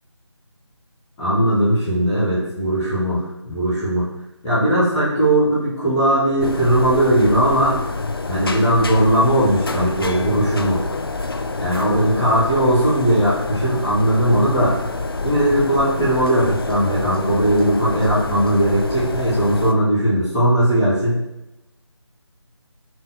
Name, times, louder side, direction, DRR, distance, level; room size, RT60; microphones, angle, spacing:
voice 1, 1.2-4.1 4.4-7.8 8.3-10.8 11.6-14.8 15.2-21.2, right 1 dB, 5° left, -18 dB, 0.7 m, -18 dB
sound 1, 6.4-19.7, left 3 dB, 50° left, 0.4 m, -27 dB
5.3 x 4.3 x 2.2 m, 0.91 s
figure-of-eight pair, 165°, 16 cm